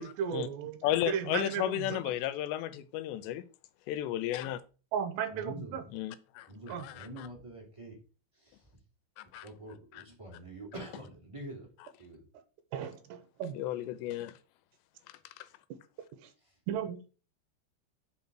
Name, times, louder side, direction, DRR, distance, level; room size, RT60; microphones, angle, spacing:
voice 1, 0.0-2.1 4.9-5.8 6.7-6.9 12.7-13.6 16.2-16.3 16.7-17.0, right 8 dB, 80° right, 3.0 m, -35 dB
voice 2, 0.8-3.4 3.9-4.6 5.9-7.3 9.2-9.5 9.9-10.0 13.5-14.4 15.4-15.5, left 13 dB, 85° left, 2.8 m, -34 dB
voice 3, 5.3-5.9 6.5-7.9 8.4-8.6 9.4-11.7 12.0-12.2, right 1 dB, 10° right, 1.5 m, -45 dB
8.5 x 4.3 x 6.2 m
omnidirectional pair, 5.1 m